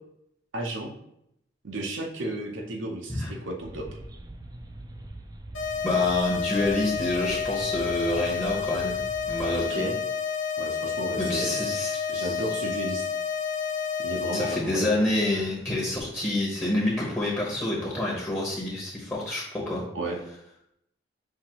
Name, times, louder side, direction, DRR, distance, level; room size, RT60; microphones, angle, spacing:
voice 1, 0.5-0.9 1.6-3.9 9.5-10.0 10.6-11.8 12.1-13.1 14.0-14.9 19.9-20.2, right 1 dB, 80° right, 1 dB, 0.7 m, -33 dB
sound 1, 3.6-9.6, right 1 dB, 20° right, 0.3 m, -42 dB
sound 2, 5.5-14.5, left 6 dB, 90° left, 0.8 m, -30 dB
voice 2, 5.8-9.0 9.3-9.9 11.2-12.4 14.3-19.8, left 2 dB, 10° left, -5 dB, 0.8 m, -27 dB
5.7 x 2.8 x 2.9 m, 0.76 s
head